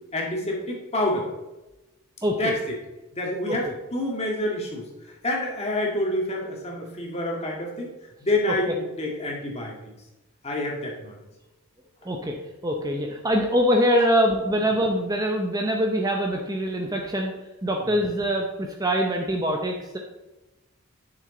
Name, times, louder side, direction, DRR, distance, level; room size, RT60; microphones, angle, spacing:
voice 1, 0.1-1.3 2.4-2.8 3.1-4.8 5.2-7.9 8.2-9.7 10.4-11.2 14.5-14.6, left 1 dB, 30° left, -1 dB, 1.9 m, -27 dB
voice 2, 2.2-2.5 3.5-3.6 12.0-12.3 12.6-17.3 17.6-20.0, equal, 15° right, 1 dB, 0.8 m, -24 dB
10.0 x 6.5 x 3.9 m, 1.0 s
head